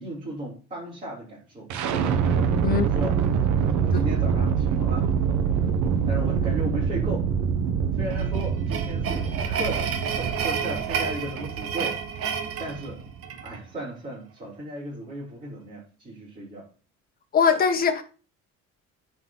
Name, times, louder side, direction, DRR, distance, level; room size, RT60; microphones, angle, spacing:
voice 1, 0.0-1.7 2.7-3.1 3.8-5.1 6.1-7.3 7.9-12.0 12.6-13.0 13.4-16.6, right 1 dB, 25° right, 5.4 m, -35 dB
sound 1, 1.7-13.6, right 6 dB, 75° right, 1.5 m, -25 dB
sound 2, 8.1-13.6, right 7 dB, 50° right, 1.8 m, -31 dB
voice 2, 17.3-18.0, left 6 dB, 30° left, 1.6 m, -21 dB
9.7 x 5.3 x 6.2 m
cardioid pair, 165°, 29 cm